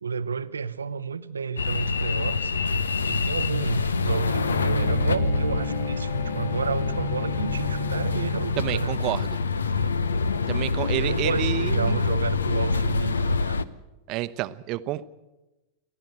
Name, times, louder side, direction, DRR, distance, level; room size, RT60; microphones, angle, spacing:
voice 1, 0.0-2.5 3.0-9.0 9.6-9.9 11.0-13.6, right 6 dB, 75° right, 0.8 m, -31 dB
sound 1, 1.6-13.6, left 4 dB, 70° left, 0.7 m, -26 dB
Bowed string instrument, 4.2-8.9, left 1 dB, 45° left, 4.8 m, -34 dB
voice 2, 8.6-9.4 10.5-12.0 14.1-15.0, right 15 dB, 40° right, 0.8 m, -29 dB
29.0 x 11.5 x 7.9 m
figure-of-eight pair, 90°, 0 cm